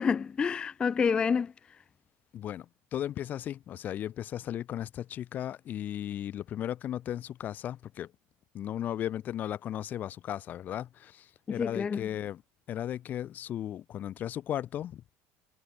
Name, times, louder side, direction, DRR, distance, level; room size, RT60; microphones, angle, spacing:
voice 1, 0.0-1.5 11.5-12.1, left 6 dB, 15° left, 0.4 m, -28 dB
voice 2, 2.3-8.1 8.5-12.4 12.7-15.0, left 11 dB, 30° left, 1.7 m, -36 dB
cardioid pair, 175°, 6 cm